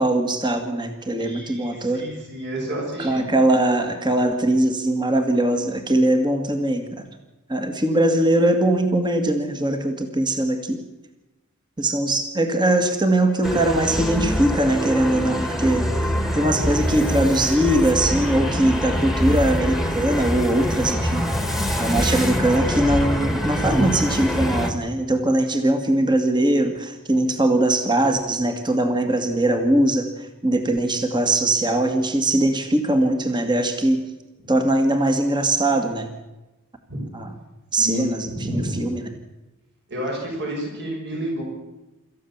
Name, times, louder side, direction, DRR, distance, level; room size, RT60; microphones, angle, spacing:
voice 1, 0.0-2.0 3.0-7.0 7.5-10.8 11.8-21.2 21.8-34.0 34.5-36.1 37.1-37.3 37.7-39.1, right 1 dB, 20° right, 6 dB, 1.9 m, -21 dB
voice 2, 1.2-3.3 36.9-37.0 37.8-38.8 39.9-41.4, equal, 55° right, -1 dB, 6.9 m, -30 dB
sound 1, 13.4-24.7, equal, ahead, 1.9 m, -24 dB
26.0 x 14.0 x 7.3 m, 1.0 s
head